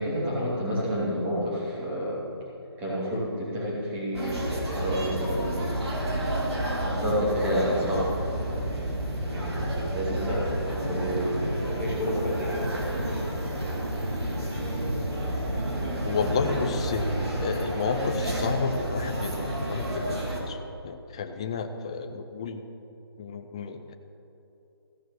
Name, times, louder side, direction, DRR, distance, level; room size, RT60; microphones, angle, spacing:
voice 1, 0.0-2.2 2.8-5.7 6.8-8.1 9.3-12.9, equal, 10° right, -7 dB, 2.8 m, -29 dB
sound 1, 4.1-20.4, right 1 dB, 80° right, 3.1 m, -30 dB
voice 2, 16.0-20.2 20.5-22.6 23.2-23.9, left 5 dB, 15° left, 7 dB, 0.3 m, -31 dB
15.0 x 6.4 x 6.3 m, 2.8 s
figure-of-eight pair, 160°, 13 cm